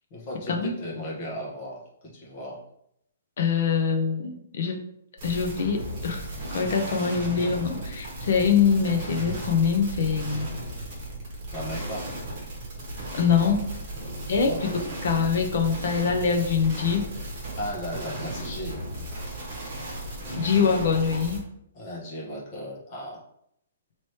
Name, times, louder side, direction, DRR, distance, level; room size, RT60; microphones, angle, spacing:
voice 1, 0.1-2.6 11.5-12.2 14.4-15.0 17.6-18.8 21.7-23.2, left 1 dB, 20° left, -4 dB, 0.9 m, -36 dB
voice 2, 3.4-4.8 5.2-10.5 13.1-13.7 14.3-17.0 20.3-21.4, left 6 dB, 45° left, 3 dB, 0.6 m, -24 dB
sound 1, 5.2-21.4, right 1 dB, 25° right, 1.2 m, -35 dB
3.2 x 2.9 x 4.3 m, 0.74 s
hypercardioid pair, 180°, 0 cm